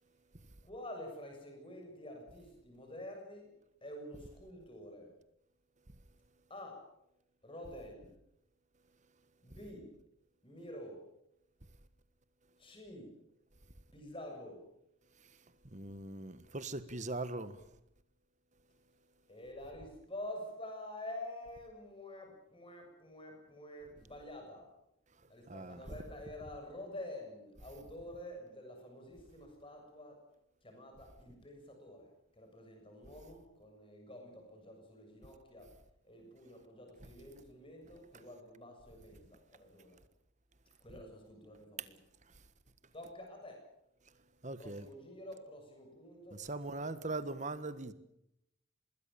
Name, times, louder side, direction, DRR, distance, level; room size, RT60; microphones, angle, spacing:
voice 1, 0.6-3.5 3.8-5.1 6.5-6.9 7.4-8.1 9.4-9.9 10.4-11.0 12.6-13.1 13.9-14.6 19.3-24.7 25.3-30.2 30.6-32.1 32.4-35.7 36.0-40.0 40.8-42.0 42.9-43.7 44.6-46.8 47.2-47.3, left 1 dB, 25° left, 7.1 m, -48 dB
voice 2, 15.6-17.6 25.5-26.0 38.1-38.2 41.8-41.9 42.3-42.4 44.4-44.9 46.3-47.9, right 2 dB, 35° right, 1.4 m, -41 dB
25.0 x 20.5 x 7.0 m
head